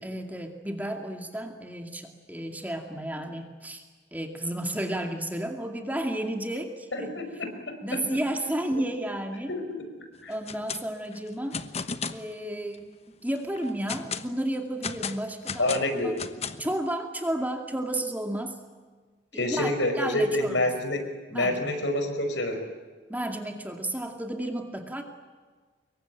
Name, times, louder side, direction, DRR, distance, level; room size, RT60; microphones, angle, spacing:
voice 1, 0.0-3.8 4.1-7.2 7.8-9.5 10.3-11.6 12.1-16.2 16.6-18.6 19.3-20.7 21.3-21.7 23.1-25.0, right 1 dB, 10° right, 4 dB, 2.3 m, -32 dB
voice 2, 6.9-7.2 9.5-9.8 10.2-10.3 15.6-16.1 19.3-21.0 21.3-22.6, left 1 dB, 75° left, 6 dB, 5.3 m, -27 dB
sound 1, 10.3-10.8 11.1-12.2 12.7-12.8 13.4-14.3 14.8-16.7, left 5 dB, 35° left, 1.1 m, -34 dB
25.5 x 23.0 x 9.1 m, 1.4 s
head